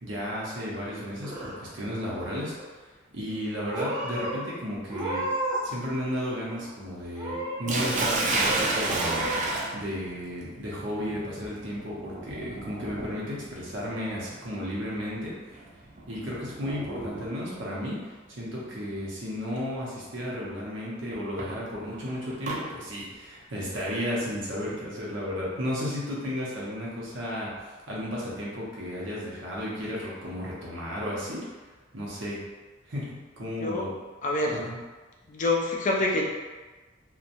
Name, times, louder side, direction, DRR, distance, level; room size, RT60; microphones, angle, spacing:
voice 1, 0.0-2.8 3.1-5.3 5.6-9.3 9.7-15.3 16.1-31.4 31.9-32.4 32.8-33.9 34.5-34.8, equal, 70° right, -6 dB, 0.8 m, -33 dB
Purr / Meow, 0.9-1.8 2.1-2.7 3.3-3.5 3.7-4.3 4.9-5.7 6.0-6.7 7.1-7.7 8.2-8.3 8.8-9.5, right 1 dB, 20° right, 0.9 m, -33 dB
Sink (filling or washing), 7.7-17.6 18.7-19.0 19.6-19.7 21.1-22.6, right 2 dB, 40° right, 0.4 m, -32 dB
voice 2, 34.2-34.6 35.3-36.3, left 2 dB, 40° left, -1 dB, 0.4 m, -26 dB
2.9 x 2.2 x 2.5 m, 1.3 s
head